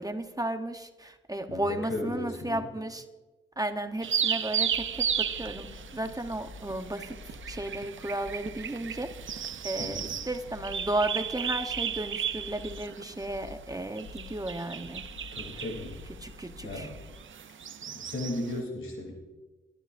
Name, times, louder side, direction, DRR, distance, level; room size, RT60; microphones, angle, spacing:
voice 1, 0.0-3.0 3.6-5.7 5.9-9.4 9.6-15.0 15.5-15.6 16.2-16.9, right 1 dB, 20° right, 7 dB, 0.9 m, -34 dB
voice 2, 1.5-2.7 9.8-10.2 15.3-16.0 16.6-17.0 17.8-19.2, left 2 dB, 85° left, 1 dB, 3.1 m, -36 dB
sound 1, 4.0-18.5, right 8 dB, 75° right, 0.6 m, -35 dB
sound 2, 4.6-17.2, left 4 dB, 70° left, 1.2 m, -49 dB
21.5 x 12.5 x 2.6 m, 1.2 s
cardioid pair, 65°, 20 cm